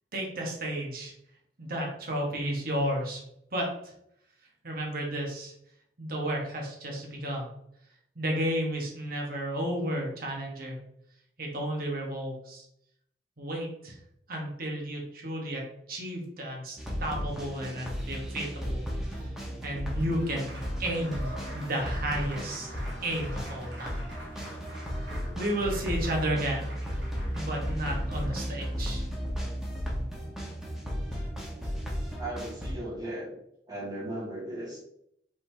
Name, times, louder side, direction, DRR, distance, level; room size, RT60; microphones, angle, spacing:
voice 1, 0.1-1.1 1.6-3.2 3.5-3.9 4.6-5.5 6.0-7.5 8.1-10.8 11.4-12.6 13.4-14.0 14.3-18.8 19.6-20.5 20.8-22.7 23.0-24.0 25.3-26.7 27.3-29.1, right 1 dB, 55° right, 0 dB, 1.3 m, -32 dB
sound 1, 16.8-32.7, equal, ahead, 1.1 m, -34 dB
Applause, 19.1-29.3 30.7-30.8 31.1-32.1, equal, 75° right, 1.7 m, -47 dB
voice 2, 32.2-33.3 33.7-34.8, right 1 dB, 20° right, -5 dB, 1.8 m, -36 dB
5.2 x 3.6 x 2.7 m, 0.73 s
head